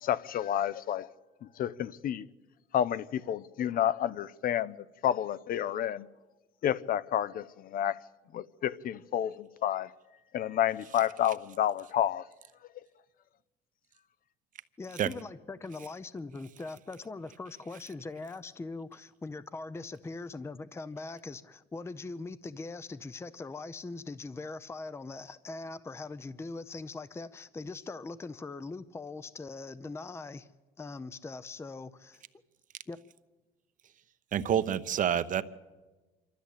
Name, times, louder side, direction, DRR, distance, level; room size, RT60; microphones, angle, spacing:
voice 1, 0.0-1.1 1.6-2.3 2.7-6.1 6.6-8.0 8.3-9.9 10.3-12.3, left 11 dB, 60° left, 0.7 m, -30 dB
voice 2, 14.8-30.5 30.8-32.2 32.9-33.0, left 3 dB, 15° left, 0.6 m, -41 dB
voice 3, 34.3-35.4, right 9 dB, 50° right, 0.9 m, -27 dB
26.0 x 13.0 x 8.5 m
cardioid pair, 110°, 17 cm